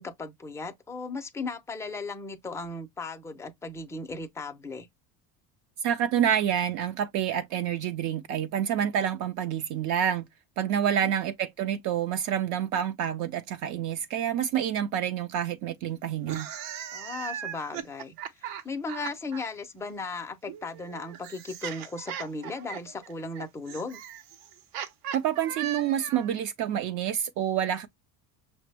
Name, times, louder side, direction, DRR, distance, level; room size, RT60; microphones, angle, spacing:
voice 1, 0.0-4.9 10.8-11.1 16.9-24.0, left 3 dB, 10° left, 0.4 m, -37 dB
voice 2, 5.8-10.2 10.6-16.5 25.1-27.9, right 9 dB, 55° right, 0.5 m, -28 dB
sound 1, 16.2-19.4 20.5-26.4, right 10 dB, 80° right, 0.8 m, -38 dB
5.9 x 2.1 x 3.2 m
cardioid pair, 145°, 38 cm